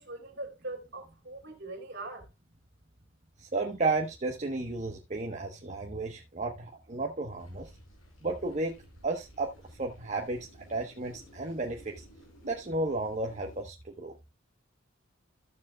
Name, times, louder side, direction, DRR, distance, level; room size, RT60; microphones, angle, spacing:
voice 1, 0.0-2.3, right 2 dB, 55° right, 2.9 m, -41 dB
voice 2, 3.4-7.7 8.2-12.0 12.4-14.1, right 3 dB, 35° right, 1.1 m, -33 dB
sound 1, 7.4-13.6, equal, 85° left, 4.6 m, -56 dB
14.0 x 7.1 x 2.3 m
head